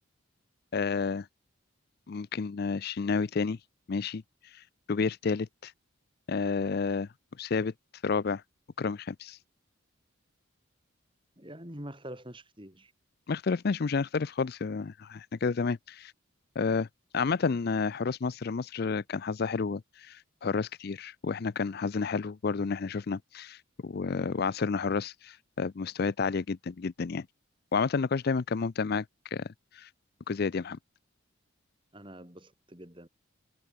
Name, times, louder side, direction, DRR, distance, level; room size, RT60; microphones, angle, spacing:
voice 1, 0.7-1.3 2.1-3.6 3.9-4.2 4.9-5.7 6.3-7.1 7.4-7.7 8.0-8.4 8.8-9.4 13.3-16.1 16.6-16.9 17.1-27.3 27.7-29.0 29.3-29.5 29.8-29.9 30.3-30.8, left 4 dB, 50° left, 0.4 m, -30 dB
voice 2, 11.4-12.9 31.9-33.1, right 1 dB, 25° right, 5.4 m, -45 dB
head